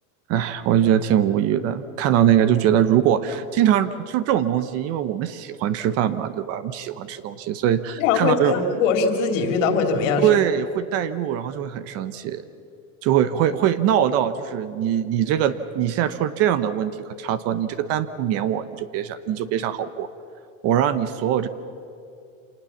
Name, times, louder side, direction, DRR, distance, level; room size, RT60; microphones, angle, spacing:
voice 1, 0.3-8.5 10.2-12.4 13.0-20.1 20.6-21.5, right 10 dB, 35° right, 13 dB, 0.8 m, -22 dB
voice 2, 8.0-10.3, left 5 dB, 65° left, 5 dB, 3.2 m, -21 dB
26.5 x 19.5 x 7.2 m, 2.5 s
supercardioid pair, 165°, 41 cm